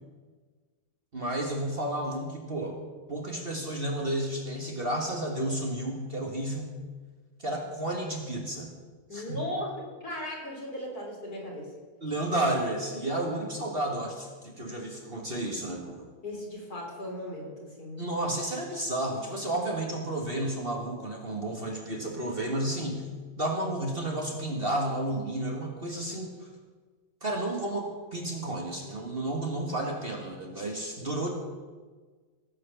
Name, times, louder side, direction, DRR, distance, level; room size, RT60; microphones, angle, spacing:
voice 1, 1.1-2.8 3.1-6.8 7.4-8.7 9.1-9.4 12.0-16.1 18.0-23.1 23.4-26.5 27.2-31.3, right 1 dB, 35° right, 1 dB, 1.8 m, -32 dB
voice 2, 9.1-11.7 16.2-18.0, left 1 dB, 60° left, -2 dB, 4.1 m, -37 dB
17.5 x 8.2 x 6.9 m, 1.4 s
omnidirectional pair, 1.9 m